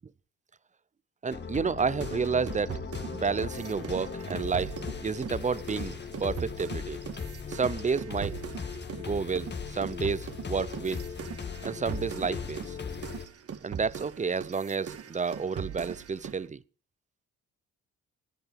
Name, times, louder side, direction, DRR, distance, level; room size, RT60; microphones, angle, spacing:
voice 1, 1.2-2.8 3.1-7.0 7.5-8.4 9.0-11.1 11.6-12.8 13.6-16.6, right 5 dB, 25° right, 0.6 m, -30 dB
sound 1, 1.3-13.3, left 5 dB, 35° left, 1.8 m, -38 dB
sound 2, 2.0-9.1 9.3-16.4, right 7 dB, 50° right, 1.8 m, -41 dB
19.5 x 10.5 x 5.2 m
cardioid pair, 90°, 30 cm